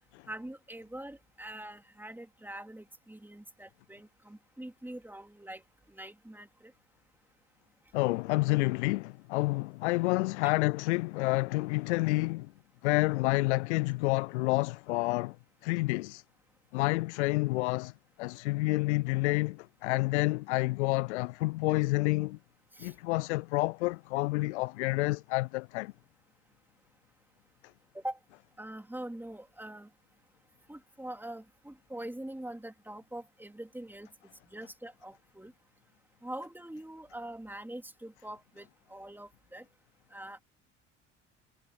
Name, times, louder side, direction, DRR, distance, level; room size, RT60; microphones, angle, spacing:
voice 1, 0.3-5.6 5.9-6.7 22.7-22.9 27.9-28.2 28.6-29.9 30.7-34.1 34.5-35.5 36.2-39.6 40.1-40.4, right 1 dB, 5° right, 3.7 m, -43 dB
voice 2, 7.9-12.5 12.8-15.4 15.6-16.2 16.7-17.9 18.2-22.4 22.8-25.9, left 23 dB, 60° left, 0.8 m, -29 dB
figure-of-eight pair, 60°, 38 cm